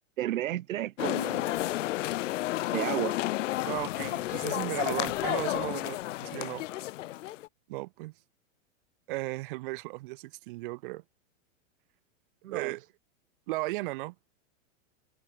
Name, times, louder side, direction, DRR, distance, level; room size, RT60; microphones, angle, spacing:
voice 1, 0.2-1.6 2.7-3.2 12.4-12.7, right 13 dB, 90° right, 1.2 m, -32 dB
sound 1, 1.0-7.5, left 15 dB, 65° left, 0.8 m, -31 dB
voice 2, 3.6-6.6 7.7-8.1 9.1-11.0 12.5-12.8 13.5-14.1, right 21 dB, 40° right, 1.5 m, -35 dB
supercardioid pair, 170°, 39 cm